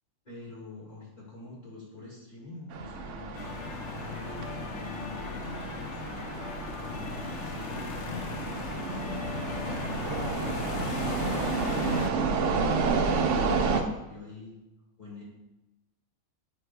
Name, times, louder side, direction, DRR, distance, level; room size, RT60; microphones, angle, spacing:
voice 1, 0.2-3.7 4.0-6.0 6.8-8.3 9.1-14.6 15.0-15.2, left 2 dB, 30° left, -6 dB, 1.7 m, -46 dB
sound 1, 2.7-13.8, right 4 dB, 65° right, 0.9 m, -31 dB
sound 2, 3.3-12.1, left 5 dB, 65° left, 0.8 m, -37 dB
7.7 x 5.7 x 2.2 m, 0.97 s
omnidirectional pair, 1.5 m